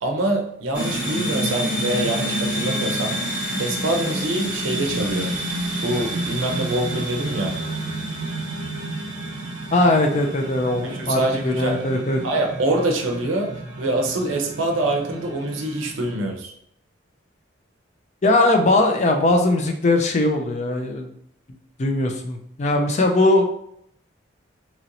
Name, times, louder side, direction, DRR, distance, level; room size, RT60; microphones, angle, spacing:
voice 1, 0.0-3.2 3.6-5.3 5.8-7.6 10.8-11.8 12.2-13.5 13.8-16.5, right 1 dB, 80° right, 2 dB, 0.5 m, -25 dB
sound 1, 0.7-16.1, right 1 dB, 10° right, 1.1 m, -29 dB
voice 2, 9.7-12.2 18.2-21.1 21.8-23.4, left 2 dB, 35° left, 4 dB, 0.4 m, -20 dB
2.9 x 2.6 x 2.9 m, 0.71 s
head